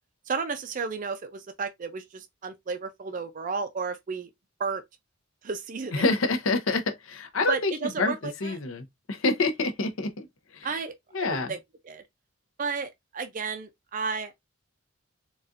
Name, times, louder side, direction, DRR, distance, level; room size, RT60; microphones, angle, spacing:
voice 1, 0.3-4.3 4.6-4.8 5.4-6.1 7.5-8.6 10.6-10.9 11.2-11.6 11.8-12.0 12.6-14.4, right 5 dB, 40° right, 0.4 m, -32 dB
voice 2, 5.9-10.3 10.5-10.8 11.1-11.5, left 3 dB, 70° left, 0.7 m, -27 dB
4.1 x 2.3 x 2.4 m
head